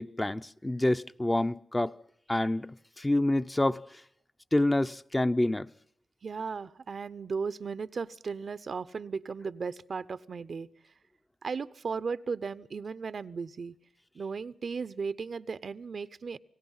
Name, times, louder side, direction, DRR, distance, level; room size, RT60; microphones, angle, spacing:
voice 1, 0.0-2.0 2.3-3.8 4.5-5.7, left 1 dB, 20° left, 0.7 m, -27 dB
voice 2, 6.2-10.7 11.4-13.7 14.1-16.4, right 5 dB, 65° right, 0.7 m, -36 dB
28.5 x 18.5 x 5.6 m
cardioid pair, 45°, 0 cm